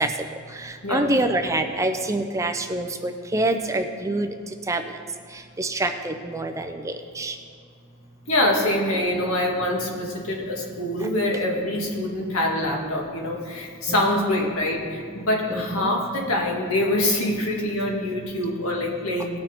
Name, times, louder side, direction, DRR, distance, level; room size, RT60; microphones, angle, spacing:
voice 1, 0.6-4.3 4.7-4.8 5.6-7.4 15.5-15.9, right 2 dB, 15° right, 6 dB, 0.4 m, -26 dB
voice 2, 8.3-19.4, left 1 dB, 70° left, -1 dB, 2.0 m, -25 dB
18.0 x 6.2 x 4.4 m, 2.2 s
head